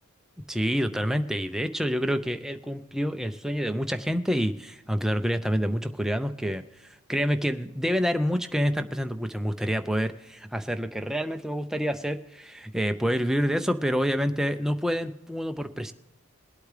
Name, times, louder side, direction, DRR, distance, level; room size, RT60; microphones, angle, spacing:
voice 1, 0.5-15.9, equal, ahead, 7 dB, 0.5 m, -27 dB
21.5 x 8.3 x 3.3 m, 0.94 s
head